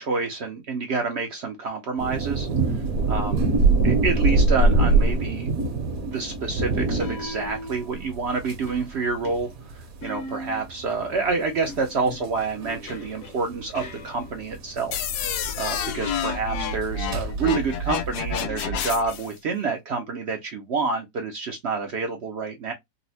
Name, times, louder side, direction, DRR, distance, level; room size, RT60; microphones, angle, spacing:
voice 1, 0.0-2.5 2.7-3.5 3.8-5.5 6.0-22.7, right 4 dB, 80° right, 0.5 m, -28 dB
sound 1, 2.0-18.4, right 3 dB, 60° right, 1.0 m, -25 dB
sound 2, 4.9-5.2 7.0-8.2 8.7-10.9 11.7-14.7 15.4-16.7 18.4-19.3, left 1 dB, 55° left, 0.7 m, -41 dB
sound 3, 14.9-19.3, left 5 dB, 70° left, 1.0 m, -29 dB
4.0 x 2.0 x 2.7 m
omnidirectional pair, 2.0 m